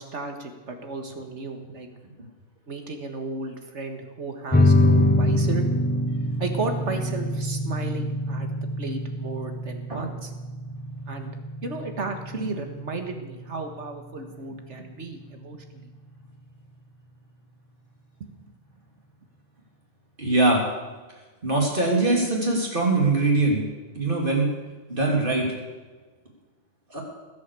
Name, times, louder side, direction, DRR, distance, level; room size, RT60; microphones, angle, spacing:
voice 1, 0.0-1.9 2.7-5.6 6.4-8.5 8.8-10.3 11.1-11.3 11.6-15.9 18.2-18.3, right 3 dB, 75° right, 5 dB, 2.0 m, -34 dB
sound 1, 4.5-15.5, left 1 dB, 10° left, 0.8 m, -25 dB
voice 2, 20.2-20.6 21.4-23.6 24.0-24.5 24.9-25.5 26.9-27.0, right 2 dB, 45° right, -1 dB, 3.4 m, -22 dB
20.0 x 8.3 x 6.9 m, 1.3 s
omnidirectional pair, 1.2 m